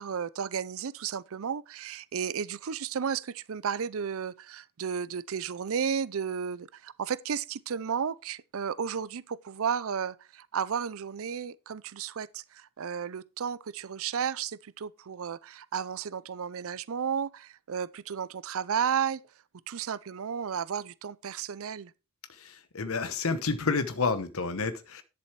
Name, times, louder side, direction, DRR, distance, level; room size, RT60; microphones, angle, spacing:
voice 1, 0.0-19.2 19.7-21.9, right 7 dB, 65° right, 0.5 m, -33 dB
voice 2, 22.3-25.0, left 4 dB, 65° left, 1.0 m, -30 dB
11.0 x 7.0 x 4.7 m
head